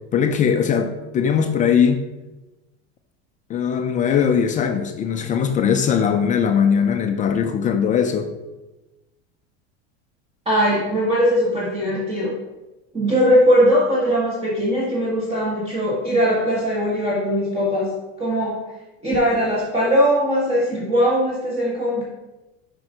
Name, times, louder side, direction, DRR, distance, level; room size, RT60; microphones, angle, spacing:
voice 1, 0.1-2.0 3.5-8.3, left 7 dB, 25° left, 6 dB, 0.4 m, -20 dB
voice 2, 10.4-12.3 12.9-17.9 18.2-18.6 19.0-22.0, equal, 15° right, -6 dB, 1.5 m, -20 dB
5.9 x 5.3 x 4.9 m, 1.1 s
supercardioid pair, 140°, 34 cm